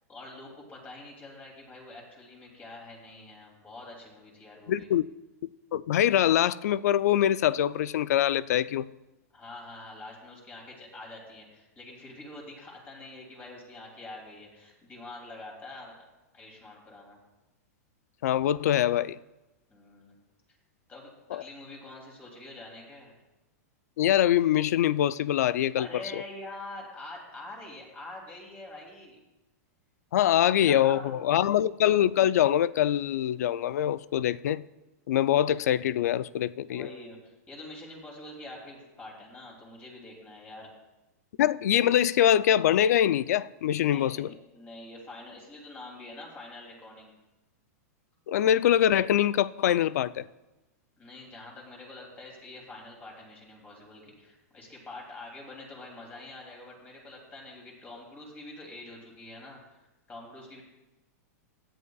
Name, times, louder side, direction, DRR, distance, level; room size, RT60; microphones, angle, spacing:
voice 1, 0.1-4.9 9.3-16.0 16.3-17.2 19.7-20.1 20.9-23.1 25.8-29.2 30.3-31.6 36.6-40.7 43.8-47.1 51.0-60.6, left 2 dB, 20° left, 2.9 m, -45 dB
voice 2, 4.7-5.1 5.7-8.9 18.2-19.2 21.3-21.4 24.0-26.2 30.1-34.6 35.1-36.9 41.4-44.3 48.3-50.2, left 11 dB, 75° left, 0.4 m, -24 dB
16.5 x 11.0 x 2.4 m
supercardioid pair, 150°, 9 cm